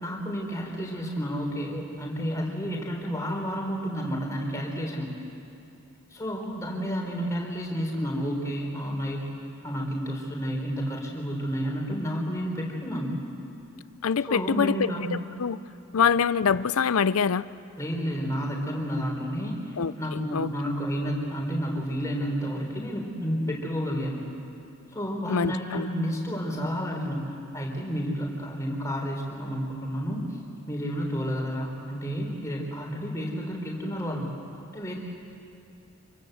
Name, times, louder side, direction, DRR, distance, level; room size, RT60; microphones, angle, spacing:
voice 1, 0.0-5.1 6.1-9.2 9.6-13.1 14.3-15.1 17.8-24.2 24.9-27.2 27.5-30.4 30.7-34.3 34.7-34.9, equal, 15° left, -1 dB, 3.8 m, -30 dB
voice 2, 14.0-15.6 15.9-17.5 19.8-19.9 20.3-20.5 25.3-25.9, left 6 dB, 85° left, 17 dB, 0.5 m, -24 dB
26.5 x 22.5 x 7.9 m, 2.6 s
head